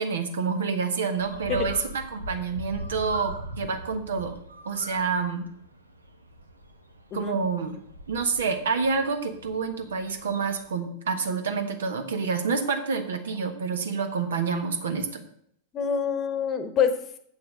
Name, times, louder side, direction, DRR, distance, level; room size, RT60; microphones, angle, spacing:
voice 1, 0.0-4.4 4.6-5.5 7.1-7.8 8.1-15.3, right 5 dB, 65° right, 6 dB, 1.2 m, -28 dB
Bird, 1.2-10.7, right 1 dB, 80° right, 1.0 m, -41 dB
voice 2, 15.7-17.2, left 7 dB, 30° left, 9 dB, 1.1 m, -26 dB
7.4 x 6.1 x 7.8 m, 0.69 s
figure-of-eight pair, 90°, 0 cm